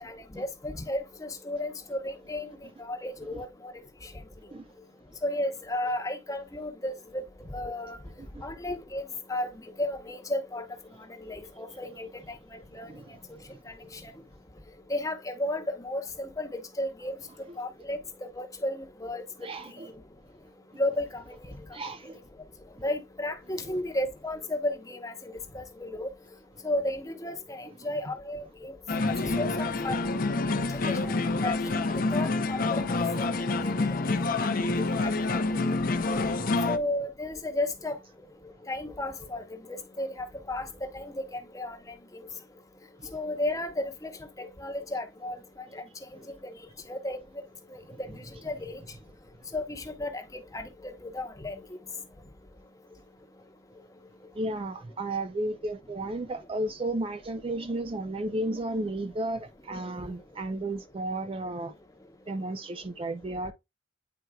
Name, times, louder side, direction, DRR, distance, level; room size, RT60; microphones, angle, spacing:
voice 1, 0.0-2.5 2.8-3.5 5.2-7.2 7.5-8.0 8.4-9.0 9.3-9.5 9.8-10.6 11.2-12.2 12.7-12.9 14.9-17.2 17.6-19.2 20.8-21.1 22.8-26.1 26.6-28.7 29.2-29.9 31.0-31.1 31.4-31.6 32.1-33.3 33.6-33.7 35.0-35.8 36.7-38.0 38.7-39.4 39.7-40.1 40.5-41.8 43.1-44.1 44.4-45.4 46.4-46.5 46.9-47.2 47.7-48.1 48.4-48.8 49.5-51.6, left 1 dB, 15° left, 0.8 m, -33 dB
voice 2, 12.8-13.6 17.5-17.6 19.4-19.9 21.7-22.2 23.6-23.8 27.8-27.9 28.9-29.4 30.7-30.8 36.4-36.7 47.9-48.0 54.3-61.7 62.3-63.5, right 1 dB, 25° right, 0.4 m, -34 dB
sound 1, 28.9-36.8, left 3 dB, 45° left, 0.6 m, -27 dB
9.3 x 4.5 x 2.2 m
head